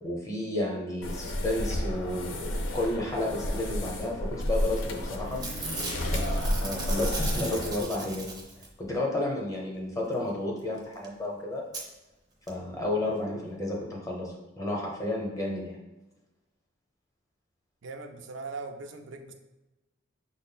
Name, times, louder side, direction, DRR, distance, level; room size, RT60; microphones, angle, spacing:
voice 1, 0.0-5.7 6.0-6.3 6.6-8.3 8.8-11.6 12.5-15.8, left 1 dB, 15° left, -2 dB, 0.7 m, -32 dB
sound 1, 1.0-7.8, equal, 80° left, 0.6 m, -31 dB
sound 2, 4.1-7.9, left 2 dB, 40° left, 0.3 m, -45 dB
Packing tape duct tape / Tearing, 4.7-5.0 5.2-8.8 10.8-10.9 11.0-11.1 11.7-11.8 12.5-12.6 12.8-12.9, right 3 dB, 20° right, 0.5 m, -37 dB
voice 2, 17.8-19.3, right 3 dB, 70° right, 5 dB, 0.4 m, -40 dB
6.0 x 2.0 x 4.2 m, 1.1 s
head